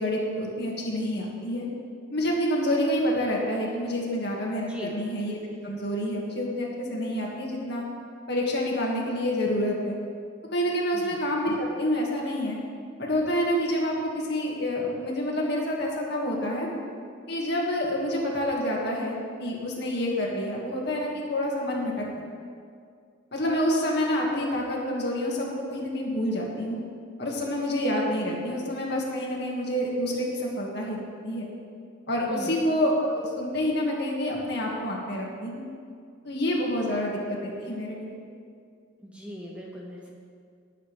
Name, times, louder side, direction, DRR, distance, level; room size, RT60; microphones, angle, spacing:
voice 1, 0.0-1.7 2.1-5.4 5.6-7.8 8.3-10.0 10.5-12.6 13.0-16.7 17.3-22.1 23.3-26.8 27.2-31.5 32.1-35.6 36.2-38.1, equal, 55° left, -2 dB, 2.1 m, -28 dB
voice 2, 4.6-5.0 10.9-11.2 32.3-32.6 39.0-40.1, equal, 5° right, -3 dB, 1.3 m, -39 dB
19.0 x 8.3 x 3.5 m, 2.2 s
head